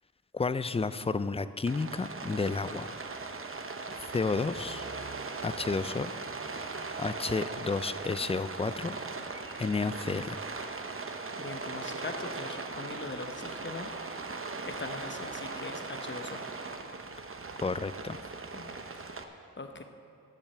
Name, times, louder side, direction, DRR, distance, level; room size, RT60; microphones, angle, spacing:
voice 1, 0.3-3.0 3.9-4.8 5.4-6.1 6.5-6.7 7.0-9.0 9.6-10.4 17.6-18.2, left 4 dB, 20° left, 13 dB, 0.3 m, -31 dB
Rain, 1.7-19.2, right 3 dB, 40° right, 0.8 m, -39 dB
voice 2, 11.4-13.9 14.7-16.4 18.5-18.8 19.1-19.8, left 3 dB, 35° left, 6 dB, 0.9 m, -41 dB
12.0 x 7.4 x 6.7 m, 2.5 s
wide cardioid pair, 75°, 32 cm